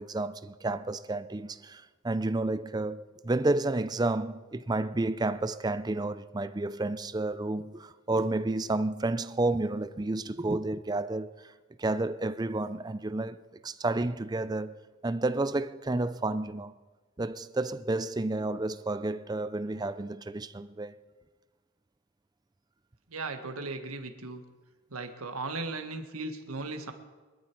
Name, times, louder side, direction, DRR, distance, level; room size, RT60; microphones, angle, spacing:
voice 1, 0.0-11.5 11.8-13.4 13.6-16.7 17.2-20.9, right 2 dB, 20° right, 0.4 m, -31 dB
voice 2, 23.1-24.4 24.9-26.9, right 3 dB, 85° right, 1.6 m, -37 dB
22.0 x 12.5 x 4.6 m
head